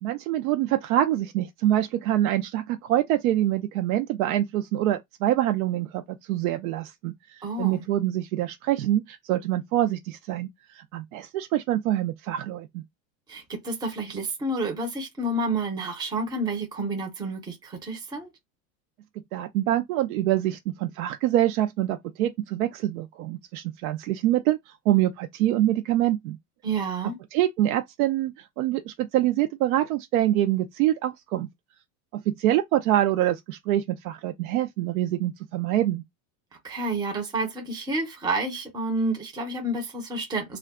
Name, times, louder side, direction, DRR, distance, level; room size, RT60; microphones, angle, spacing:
voice 1, 0.0-12.8 19.3-26.4 27.3-31.5 32.1-36.0, right 13 dB, 90° right, 0.5 m, -25 dB
voice 2, 7.4-7.8 13.3-18.3 26.6-27.2 36.6-40.6, right 2 dB, 10° right, 0.6 m, -29 dB
2.3 x 2.1 x 3.5 m
supercardioid pair, 145°, 42 cm